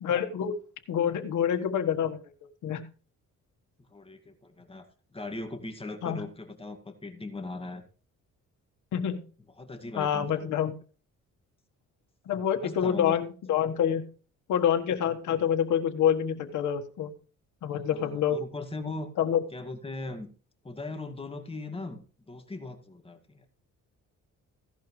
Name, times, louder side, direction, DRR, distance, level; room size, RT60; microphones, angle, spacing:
voice 1, 0.0-0.5 0.9-2.2 2.6-2.8 6.0-6.2 8.9-9.2 9.9-10.7 12.3-14.1 14.5-17.1 17.6-18.4 19.2-19.4, left 9 dB, 75° left, 6 dB, 1.5 m, -27 dB
voice 2, 3.9-4.9 5.1-7.8 9.6-10.5 12.6-13.2 17.9-19.1 19.5-20.3 20.6-23.5, left 2 dB, 20° left, 4 dB, 2.1 m, -39 dB
16.0 x 11.5 x 3.3 m, 0.41 s
cardioid pair, 90°, 30 cm